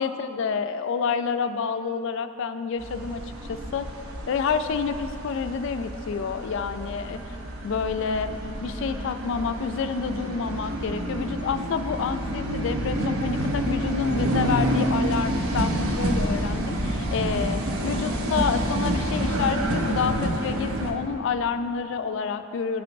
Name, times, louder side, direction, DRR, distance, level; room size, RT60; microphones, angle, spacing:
voice 1, 0.0-3.2 3.5-3.9 4.3-7.2 7.6-22.8, left 5 dB, 60° left, 10 dB, 0.3 m, -28 dB
sound 1, 2.8-20.9, right 1 dB, 80° right, 0.7 m, -28 dB
12.0 x 5.8 x 2.6 m, 2.9 s
head